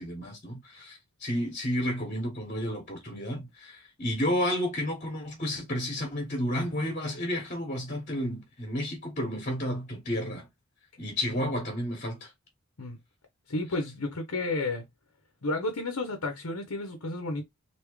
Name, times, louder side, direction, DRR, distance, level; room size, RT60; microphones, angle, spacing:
voice 1, 0.0-10.5 11.0-12.3, equal, 35° left, 1.2 m, -31 dB
voice 2, 13.5-14.8 15.4-17.4, left 2 dB, 80° left, 0.9 m, -31 dB
3.5 x 2.9 x 3.1 m
head